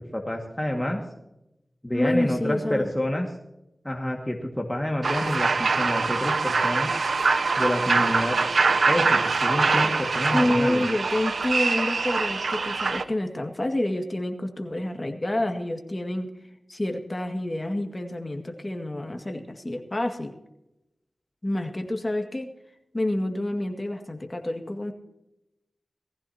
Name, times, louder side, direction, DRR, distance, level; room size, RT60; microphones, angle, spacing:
voice 1, 0.1-1.0 1.8-3.3 3.8-6.9 7.6-8.4 8.9-10.8, left 1 dB, 10° left, 1 dB, 1.9 m, -28 dB
voice 2, 1.9-2.9 10.3-16.3 16.7-20.3 21.4-22.5 22.9-24.9, left 1 dB, 30° left, 4 dB, 2.0 m, -28 dB
sound 1, 5.0-13.0, right 4 dB, 80° right, 0.7 m, -24 dB
19.5 x 15.0 x 2.9 m, 0.88 s
wide cardioid pair, 65°, 0 cm